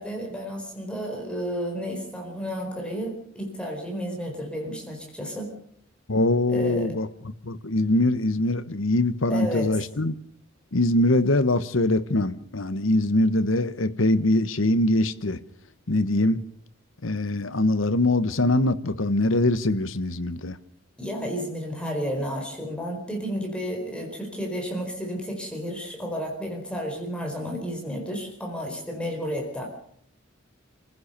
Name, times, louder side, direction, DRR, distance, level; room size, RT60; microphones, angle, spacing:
voice 1, 0.0-5.5 6.5-6.9 9.3-9.8 21.0-29.7, equal, 5° left, 4.5 m, -32 dB
voice 2, 6.1-7.1 7.5-10.1 10.7-15.4 15.9-16.4 17.0-20.6, left 1 dB, 75° left, 1.2 m, -23 dB
28.0 x 15.5 x 6.7 m
head